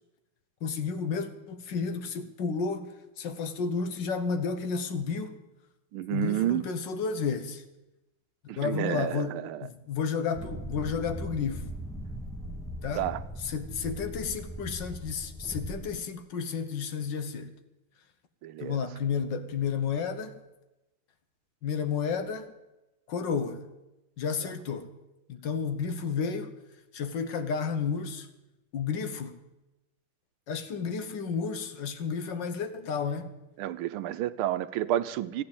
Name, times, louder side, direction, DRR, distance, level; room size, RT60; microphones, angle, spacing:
voice 1, 0.6-5.4 6.1-7.6 8.4-11.7 12.8-13.1 13.4-17.5 18.6-20.4 21.6-22.5 23.1-23.6 24.2-24.9 25.3-26.5 26.9-28.3 28.7-29.4 30.5-33.3, left 6 dB, 60° left, 1.7 m, -32 dB
voice 2, 5.9-6.6 8.5-9.7 12.9-13.2 18.4-18.8 33.6-35.4, right 12 dB, 80° right, 1.5 m, -30 dB
sound 1, 10.3-15.9, equal, 5° left, 0.4 m, -39 dB
14.0 x 9.6 x 8.7 m
omnidirectional pair, 2.4 m